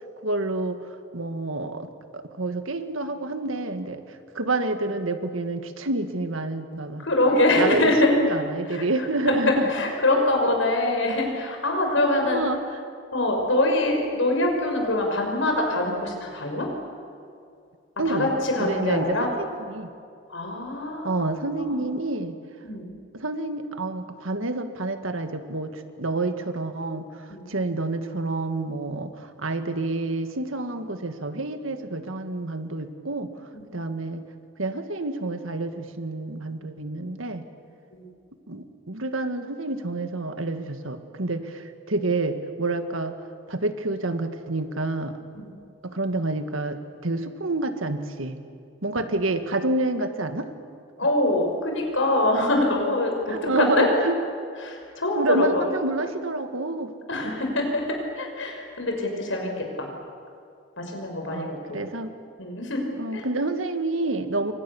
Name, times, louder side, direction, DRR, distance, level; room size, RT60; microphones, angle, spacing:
voice 1, 0.2-0.8 1.1-1.9 2.1-4.0 4.4-7.1 7.6-9.7 10.2-10.3 12.2-12.8 18.0-18.3 18.6-19.9 21.0-22.4 23.1-33.3 33.7-34.2 34.6-37.4 38.5-43.2 43.5-45.2 45.8-48.4 48.8-50.5 53.3-54.2 55.1-56.9 61.3-62.1 63.0-64.5, right 2 dB, 85° right, 8 dB, 1.8 m, -28 dB
voice 2, 7.0-8.1 8.7-8.8 9.3-12.4 13.1-16.7 18.1-19.3 20.3-21.8 22.6-22.9 27.3-27.4 33.5-33.6 37.9-38.0 45.3-45.5 51.0-53.9 54.6-55.6 57.1-57.9 58.2-59.5 59.8-59.9 60.8-61.8 62.4-62.8 63.1-63.2, left 2 dB, 70° left, 2 dB, 5.7 m, -24 dB
28.5 x 25.0 x 7.1 m, 2.4 s
head